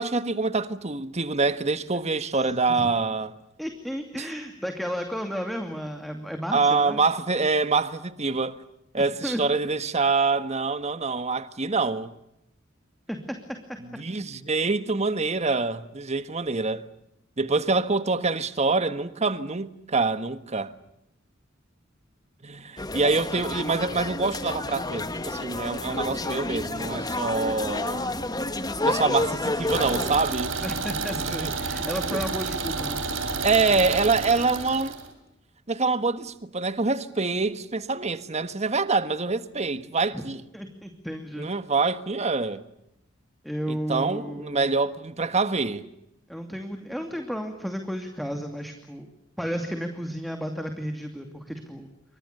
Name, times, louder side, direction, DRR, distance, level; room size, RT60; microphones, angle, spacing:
voice 1, 0.0-3.3 4.2-4.3 6.5-8.6 8.9-12.1 14.0-16.9 17.4-20.7 22.4-28.1 28.8-30.5 31.2-31.5 32.1-32.2 33.4-35.0 35.7-40.4 41.4-42.6 43.7-45.8, right 3 dB, 35° right, 1.5 m, -25 dB
voice 2, 2.3-2.9 3.6-7.0 9.0-9.4 13.1-13.6 30.6-33.0 40.1-40.2 40.5-41.5 43.4-44.7 46.3-49.1 49.4-51.9, equal, ahead, 2.6 m, -33 dB
sound 1, 22.8-30.2, left 2 dB, 20° left, 1.7 m, -30 dB
sound 2, 29.7-35.1, right 4 dB, 90° right, 5.3 m, -30 dB
29.0 x 25.5 x 6.8 m
head